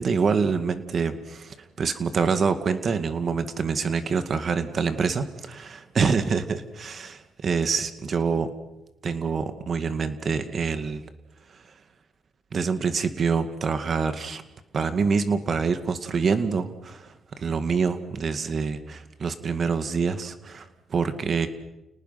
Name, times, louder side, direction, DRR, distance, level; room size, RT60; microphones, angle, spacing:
voice 1, 0.0-8.5 9.0-11.0 12.5-14.4 14.7-21.5, right 5 dB, 50° right, 10 dB, 2.1 m, -26 dB
30.0 x 19.0 x 5.9 m, 0.94 s
cardioid pair, 80°, 0 cm